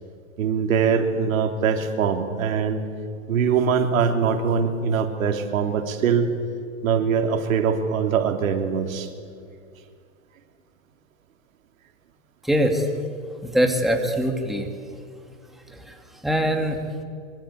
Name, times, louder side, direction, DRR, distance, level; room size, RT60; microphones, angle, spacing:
voice 1, 0.4-2.8 3.3-6.3 6.8-9.1, right 6 dB, 80° right, 5 dB, 3.3 m, -22 dB
voice 2, 12.4-12.8 13.4-14.7 16.2-16.8, equal, ahead, 4 dB, 2.4 m, -22 dB
25.0 x 23.5 x 8.6 m, 2.3 s
supercardioid pair, 135°, 40 cm